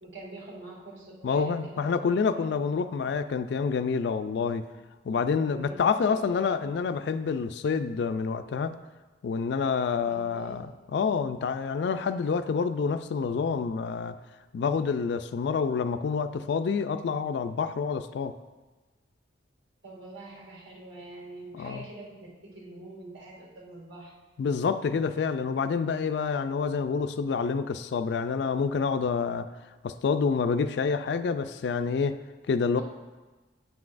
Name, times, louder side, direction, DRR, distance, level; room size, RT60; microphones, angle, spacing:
voice 1, 0.0-2.5 5.4-5.8 6.1-6.4 10.0-10.6 19.8-24.1 32.8-32.9, right 2 dB, 65° right, -4 dB, 2.0 m, -45 dB
voice 2, 1.2-4.6 5.1-8.8 9.2-14.2 14.5-18.3 21.5-21.8 24.4-29.5 29.8-32.2 32.5-32.8, left 5 dB, 60° left, 11 dB, 0.3 m, -28 dB
9.5 x 5.9 x 2.5 m, 1.2 s
head